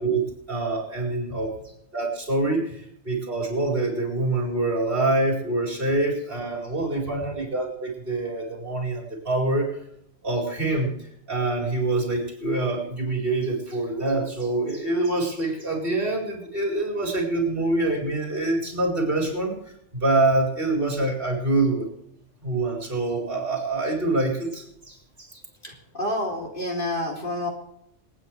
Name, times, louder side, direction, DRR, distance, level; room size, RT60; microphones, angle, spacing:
voice 1, 0.0-1.5 1.9-9.7 10.2-19.6 19.9-21.9 22.4-25.4, right 2 dB, 45° right, -1 dB, 4.8 m, -25 dB
voice 2, 25.6-27.5, left 1 dB, 45° left, 0 dB, 3.5 m, -29 dB
27.5 x 9.4 x 3.4 m, 0.76 s
omnidirectional pair, 1.3 m